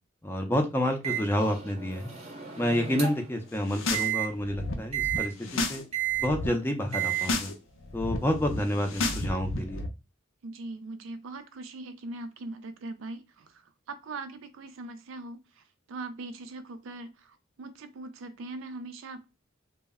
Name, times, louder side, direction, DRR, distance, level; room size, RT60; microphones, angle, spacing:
voice 1, 0.2-2.1 2.6-5.8 6.2-7.5 7.9-9.8, left 1 dB, 10° left, 4 dB, 0.4 m, -29 dB
Microwave oven, 1.0-3.4 3.9-4.3 4.9-5.3 5.9-6.3 6.9-7.3, right 11 dB, 35° right, 0.6 m, -32 dB
sound 1, 3.5-4.1 4.4-5.8 6.1-6.5 6.9-7.5 7.8-9.9, left 2 dB, 85° left, 0.5 m, -33 dB
voice 2, 10.4-19.3, right 2 dB, 80° right, 9 dB, 0.4 m, -41 dB
2.0 x 2.0 x 3.4 m, 0.26 s
head